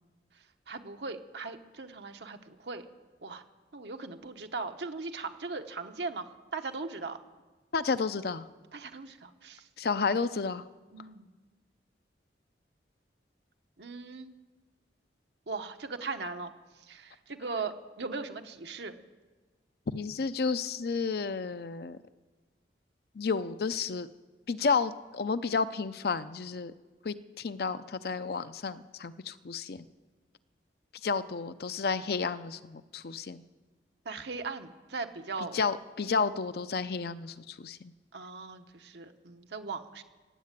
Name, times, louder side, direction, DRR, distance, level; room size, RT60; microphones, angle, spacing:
voice 1, 0.7-2.8 3.2-3.4 3.7-7.2 8.7-9.7 10.9-11.3 13.8-14.3 15.5-16.5 16.8-18.9 34.0-35.6 38.1-40.0, right 4 dB, 75° right, 6 dB, 1.1 m, -39 dB
voice 2, 7.7-8.5 9.8-10.6 19.9-22.0 23.1-24.1 24.5-26.7 27.0-29.9 31.0-33.4 35.4-37.9, left 4 dB, 60° left, 12 dB, 0.5 m, -31 dB
16.5 x 8.5 x 8.3 m, 1.3 s
head